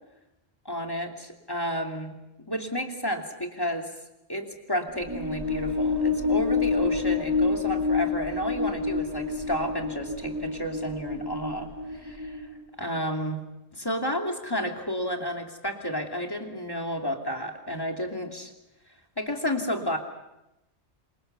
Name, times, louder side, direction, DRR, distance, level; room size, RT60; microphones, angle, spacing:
voice 1, 0.6-2.1 2.5-3.9 4.3-12.5 12.8-13.4 13.7-18.5 19.2-20.0, equal, 20° left, 3 dB, 2.9 m, -31 dB
sound 1, 4.9-12.6, left 4 dB, 20° right, 2.2 m, -28 dB
27.0 x 25.0 x 6.8 m, 0.91 s
omnidirectional pair, 1.2 m